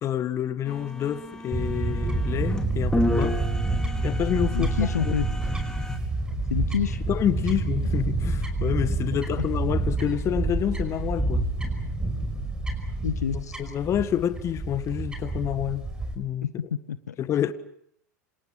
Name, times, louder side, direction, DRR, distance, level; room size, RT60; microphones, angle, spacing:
voice 1, 0.0-3.4 4.0-4.7 5.0-5.1 7.1-11.5 13.3-15.9 16.1-16.5 17.2-17.5, left 10 dB, 30° left, 1.6 m, -28 dB
sound 1, 0.7-6.0, left 1 dB, 10° left, 4.2 m, -32 dB
Fowl / Bird, 1.5-16.1, right 2 dB, 10° right, 5.4 m, -28 dB
voice 2, 4.5-5.3 6.5-7.0 9.3-9.4 13.0-13.6 16.4-17.2, left 8 dB, 75° left, 1.0 m, -28 dB
28.0 x 27.0 x 6.0 m
figure-of-eight pair, 85°, 9 cm